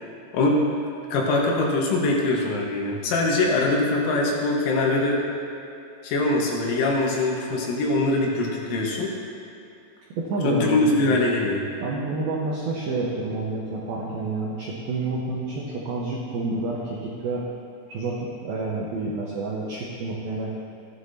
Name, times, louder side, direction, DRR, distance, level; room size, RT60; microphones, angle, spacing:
voice 1, 0.3-0.7 1.1-5.2 6.0-9.1 10.4-11.6, left 2 dB, 75° left, -2 dB, 3.8 m, -22 dB
voice 2, 10.1-11.2 11.8-17.4 17.9-20.5, right 3 dB, 85° right, -5 dB, 2.2 m, -29 dB
15.0 x 11.0 x 2.8 m, 2.7 s
omnidirectional pair, 5.9 m